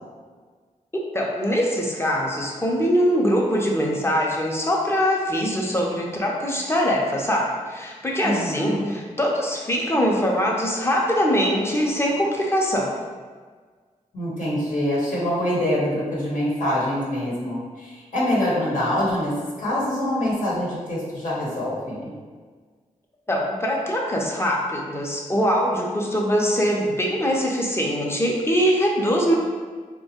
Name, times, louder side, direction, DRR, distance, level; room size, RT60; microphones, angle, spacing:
voice 1, 0.9-13.0 23.3-29.4, equal, 20° left, -2 dB, 0.6 m, -22 dB
voice 2, 8.2-8.9 14.1-19.3 19.6-22.1, left 1 dB, 75° left, -7 dB, 0.9 m, -25 dB
2.9 x 2.2 x 2.8 m, 1.5 s
cardioid pair, 60°, 14 cm